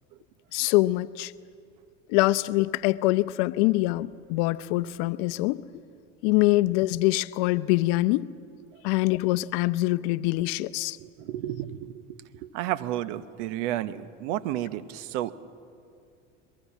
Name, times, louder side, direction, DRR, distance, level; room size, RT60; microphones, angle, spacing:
voice 1, 0.5-1.3 2.1-5.6 6.2-8.3 8.8-11.0, left 19 dB, 65° left, 16 dB, 0.7 m, -24 dB
voice 2, 11.0-15.3, right 13 dB, 70° right, 14 dB, 1.0 m, -32 dB
22.5 x 22.0 x 7.3 m, 2.3 s
hypercardioid pair, 90°, 38 cm